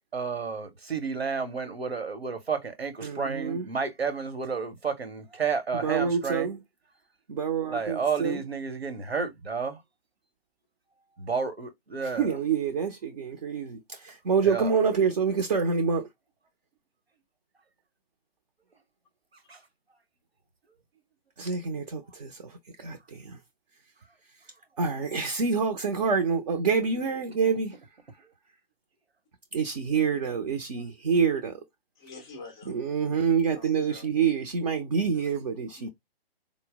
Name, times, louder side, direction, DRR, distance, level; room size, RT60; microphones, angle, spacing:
voice 1, 0.0-6.5 7.7-9.8 11.2-12.3 14.4-14.7 19.5-19.6, right 5 dB, 80° right, 1.0 m, -31 dB
voice 2, 3.0-3.7 5.8-6.6 7.3-8.4 12.0-16.1 21.4-23.4 24.8-27.8 29.5-31.6 32.7-35.9, right 6 dB, 40° right, 0.5 m, -27 dB
voice 3, 32.0-32.7 33.5-34.1 35.8-35.9, left 3 dB, 5° left, 0.4 m, -45 dB
4.2 x 2.0 x 3.4 m
figure-of-eight pair, 130°, 31 cm